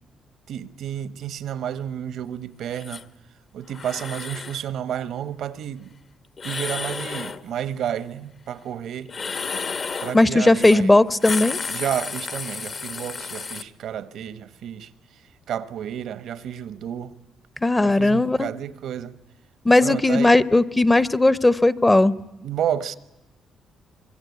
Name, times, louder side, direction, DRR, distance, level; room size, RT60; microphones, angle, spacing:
voice 1, 0.5-3.1 3.5-5.9 6.4-9.1 10.0-10.9 11.7-14.9 15.5-17.1 17.8-19.2 19.8-20.4 22.4-22.9, right 9 dB, 75° right, 1.2 m, -31 dB
sound 1, 2.7-3.0 3.7-4.6 6.4-7.4 9.1-10.2 10.6-10.8 11.1-13.6, left 5 dB, 45° left, 1.2 m, -32 dB
voice 2, 10.1-11.6 17.6-18.5 19.6-22.1, left 2 dB, 15° left, 0.9 m, -17 dB
25.0 x 23.0 x 8.4 m
cardioid pair, 90°, 0 cm